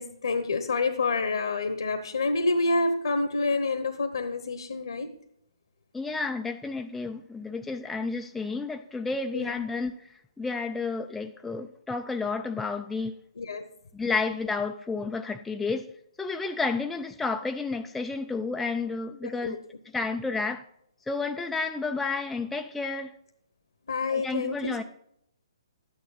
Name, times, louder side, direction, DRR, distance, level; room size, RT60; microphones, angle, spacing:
voice 1, 0.0-5.1 9.3-9.6 13.3-13.6 19.2-19.6 23.8-24.8, left 3 dB, 65° left, 1.1 m, -28 dB
voice 2, 5.9-13.1 13.9-15.9 16.2-19.6 19.9-20.6 21.1-23.1 24.1-24.8, left 4 dB, 5° left, 0.4 m, -31 dB
12.5 x 9.1 x 4.1 m
figure-of-eight pair, 130°, 3 cm